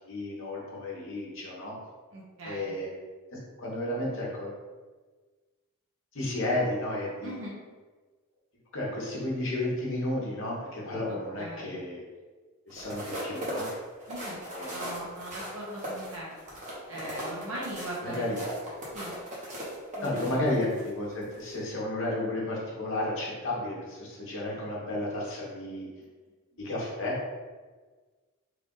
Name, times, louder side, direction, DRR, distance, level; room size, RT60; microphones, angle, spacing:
voice 1, 0.0-1.8 2.4-2.9 3.3-4.5 6.1-7.3 8.7-12.0 12.7-13.6 14.5-14.9 18.0-18.4 20.0-25.9 26.6-27.1, left 1 dB, 65° left, -4 dB, 1.2 m, -32 dB
voice 2, 2.1-2.7 7.2-7.6 11.1-11.8 14.1-14.4 14.7-16.3 16.9-18.4 18.9-19.1 19.9-20.5, right 1 dB, 70° right, -4 dB, 1.0 m, -40 dB
sound 1, 12.7-20.9 21.3-21.5, equal, 35° right, 1.0 m, -38 dB
3.4 x 2.5 x 3.8 m, 1.3 s
head